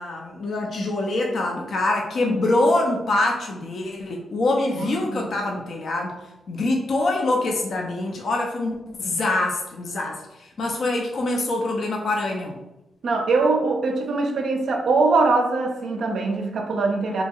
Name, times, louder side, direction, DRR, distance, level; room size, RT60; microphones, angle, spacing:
voice 1, 0.0-6.2 6.5-12.6, left 2 dB, 60° left, 0 dB, 0.4 m, -24 dB
voice 2, 4.8-5.2 13.0-17.2, right 3 dB, 70° right, 2 dB, 0.4 m, -22 dB
2.7 x 2.3 x 2.8 m, 0.97 s
cardioid pair, 80°, 0 cm